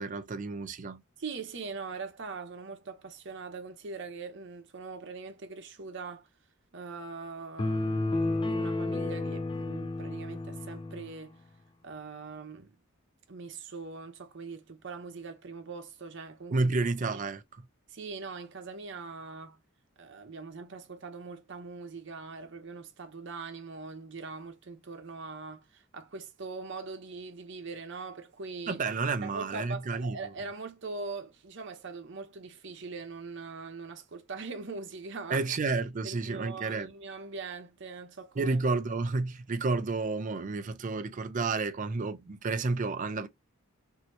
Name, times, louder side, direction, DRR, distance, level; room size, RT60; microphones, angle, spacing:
voice 1, 0.0-1.0 16.5-17.6 28.7-30.3 35.3-36.9 38.4-43.3, right 3 dB, 40° right, 0.4 m, -31 dB
voice 2, 1.2-6.3 6.7-11.4 11.8-12.8 13.3-16.7 17.1-17.2 17.9-19.6 20.0-28.8 29.2-35.4 36.0-38.6, right 4 dB, 60° right, 0.8 m, -42 dB
sound 1, 7.6-11.1, left 2 dB, 25° left, 0.4 m, -31 dB
2.8 x 2.7 x 3.0 m
head